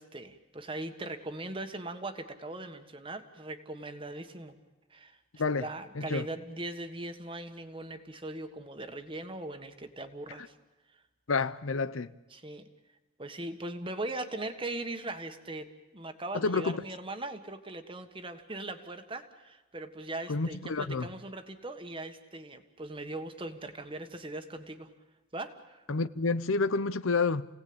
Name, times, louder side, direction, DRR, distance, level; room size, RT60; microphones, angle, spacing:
voice 1, 0.0-4.6 4.9-5.2 5.6-10.5 12.3-12.6 13.2-15.7 15.9-24.9 25.3-25.8, right 2 dB, 25° right, 1.5 m, -40 dB
voice 2, 5.9-6.3 11.3-12.1 16.3-16.8 20.3-21.1 25.9-27.5, left 4 dB, 90° left, 0.8 m, -29 dB
29.0 x 18.0 x 8.8 m
head